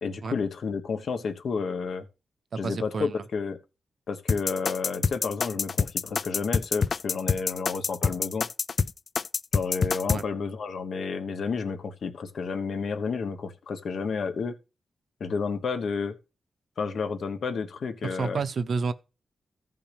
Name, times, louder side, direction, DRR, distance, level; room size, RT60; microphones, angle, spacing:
voice 1, 0.0-2.1 2.6-3.6 4.1-8.5 9.5-14.5 15.2-16.2 16.8-18.4, left 5 dB, 65° left, 1.1 m, -31 dB
voice 2, 2.5-3.2 10.1-10.2 18.1-18.9, right 4 dB, 60° right, 0.7 m, -30 dB
sound 1, 4.3-10.2, left 5 dB, 50° left, 0.4 m, -26 dB
15.0 x 5.7 x 3.3 m
cardioid pair, 95°, 0 cm